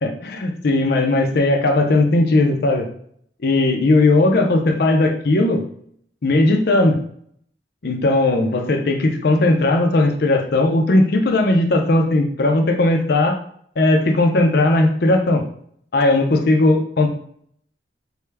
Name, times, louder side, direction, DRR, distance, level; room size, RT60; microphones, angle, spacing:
voice 1, 0.0-2.9 3.4-5.6 6.2-7.0 7.8-13.4 13.8-15.4 15.9-17.1, left 2 dB, 60° left, 4 dB, 0.6 m, -17 dB
4.4 x 2.2 x 3.4 m, 0.64 s
head